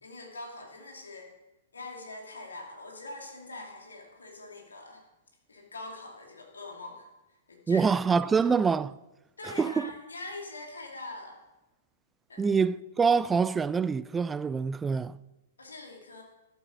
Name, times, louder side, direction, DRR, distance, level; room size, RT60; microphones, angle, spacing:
voice 1, 0.0-1.3 1.7-5.0 5.5-7.1 7.5-7.9 8.2-8.5 9.4-11.4 12.3-12.4 15.6-16.2, left 2 dB, 80° left, 2.7 m, -43 dB
voice 2, 7.7-8.9 9.6-9.9 12.4-15.2, right 5 dB, 15° right, 0.3 m, -25 dB
12.5 x 8.0 x 6.4 m
figure-of-eight pair, 110°, 0 cm